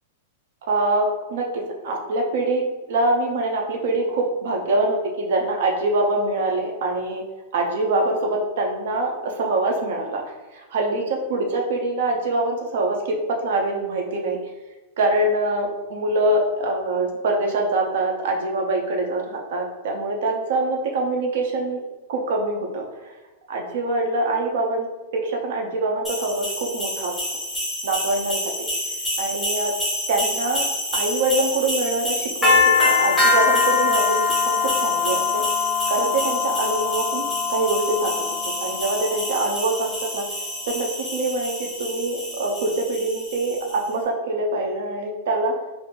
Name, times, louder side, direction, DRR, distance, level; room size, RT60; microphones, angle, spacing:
voice 1, 0.7-7.2 7.5-10.2 10.5-14.4 15.0-23.1 23.5-27.4 27.8-28.4 29.2-29.7 30.1-30.7 30.9-34.2 34.5-35.4 35.9-38.1 38.6-40.2 40.7-45.5, right 2 dB, 55° right, 1 dB, 0.5 m, -24 dB
sound 1, 26.0-43.8, left 3 dB, ahead, 0.7 m, -24 dB
2.5 x 2.4 x 3.7 m, 1.1 s
supercardioid pair, 175°, 0 cm